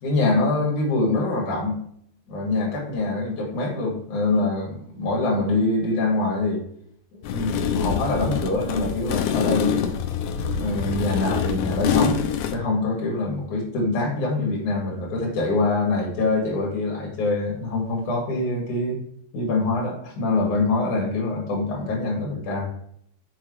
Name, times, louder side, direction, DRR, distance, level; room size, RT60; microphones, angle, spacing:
voice 1, 0.0-1.8 2.3-6.6 7.1-10.0 10.5-12.3 12.5-19.0 19.3-22.7, left 2 dB, 55° left, -2 dB, 3.6 m, -24 dB
sound 1, 7.2-12.5, left 7 dB, 80° left, 2.5 m, -25 dB
6.8 x 6.1 x 4.7 m, 0.66 s
omnidirectional pair, 4.6 m